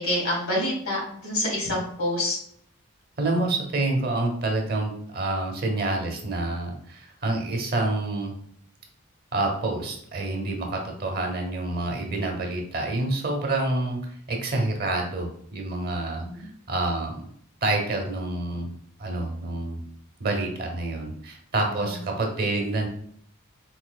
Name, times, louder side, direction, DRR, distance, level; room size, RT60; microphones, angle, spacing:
voice 1, 0.0-2.4 16.3-16.4 21.7-21.9, left 1 dB, 75° left, -2 dB, 1.5 m, -27 dB
voice 2, 3.2-8.3 9.3-14.0 14.3-16.3 16.7-17.2 17.6-18.7 19.0-19.8 20.2-22.9, right 2 dB, 45° right, 2 dB, 0.7 m, -27 dB
3.9 x 2.7 x 2.2 m, 0.64 s
head